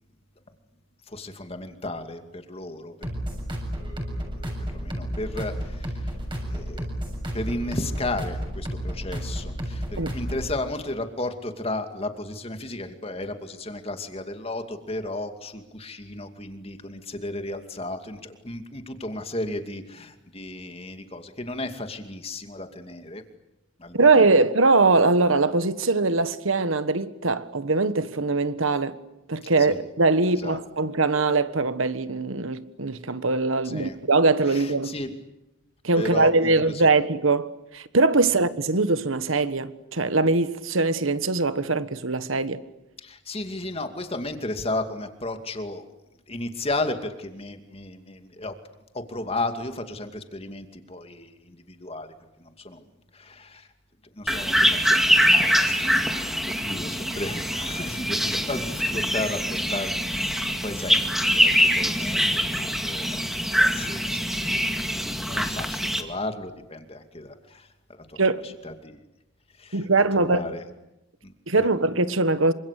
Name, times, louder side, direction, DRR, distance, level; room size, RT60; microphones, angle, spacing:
voice 1, 1.1-2.9 4.7-6.1 6.4-6.9 7.3-23.2 23.8-24.1 29.6-29.8 30.4-30.6 33.6-34.0 34.5-35.1 36.0-36.9 43.0-45.8 46.3-48.5 48.9-52.1 52.4-52.8 53.1-53.7 54.2-54.5 54.8-59.4 59.7-64.6 65.2-67.7 68.1-68.2 68.6-69.0 69.6-69.9 70.1-70.7 71.2-71.7, left 2 dB, 30° left, 2.5 m, -34 dB
sound 1, 3.0-10.5, equal, 25° right, 7.3 m, -32 dB
voice 2, 23.9-29.0 29.3-34.9 35.8-42.6 68.2-68.4 69.7-70.5 71.5-72.5, right 3 dB, 85° right, 1.4 m, -22 dB
sound 2, 54.3-66.0, equal, ahead, 2.1 m, -23 dB
27.5 x 25.5 x 8.4 m
head